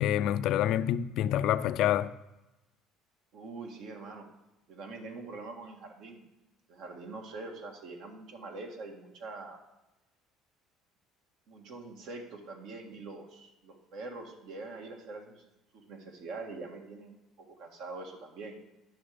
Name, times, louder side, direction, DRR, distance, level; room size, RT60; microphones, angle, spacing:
voice 1, 0.0-2.1, left 11 dB, 65° left, 0.4 m, -27 dB
voice 2, 3.3-4.3 4.7-6.2 6.7-9.6 11.5-15.4 15.7-18.6, right 3 dB, 70° right, 1.8 m, -44 dB
10.0 x 6.3 x 5.0 m
cardioid pair, 120°, 0 cm